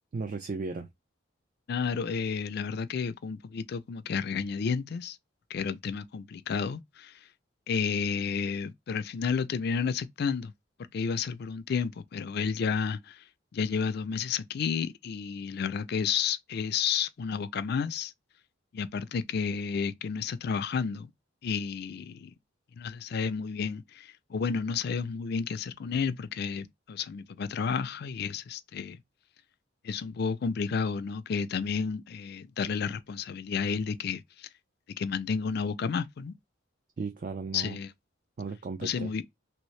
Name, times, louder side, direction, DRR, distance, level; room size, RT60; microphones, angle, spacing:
voice 1, 0.1-0.9 37.0-37.8 38.4-39.1, right 4 dB, 45° right, 0.4 m, -35 dB
voice 2, 1.7-5.2 5.5-7.1 7.7-10.5 10.9-13.2 13.5-18.1 18.7-21.1 21.4-22.3 22.8-29.0 29.8-34.5 35.0-36.3 37.5-37.9 38.8-39.2, left 6 dB, 55° left, 0.4 m, -31 dB
3.1 x 2.6 x 3.1 m
head